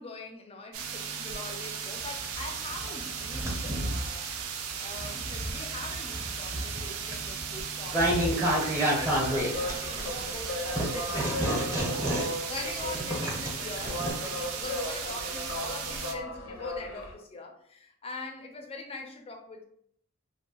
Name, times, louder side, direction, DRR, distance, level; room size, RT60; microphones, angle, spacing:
voice 1, 0.0-19.6, left 3 dB, 30° left, 4 dB, 0.4 m, -42 dB
sound 1, 0.7-16.1, right 6 dB, 80° right, 0.4 m, -37 dB
sound 2, 2.0-4.1 4.7-10.3 10.7-14.1, right 1 dB, 10° right, 0.6 m, -30 dB
sound 3, 9.3-17.1, left 1 dB, 75° left, 0.5 m, -37 dB
2.6 x 2.1 x 2.8 m, 0.68 s
head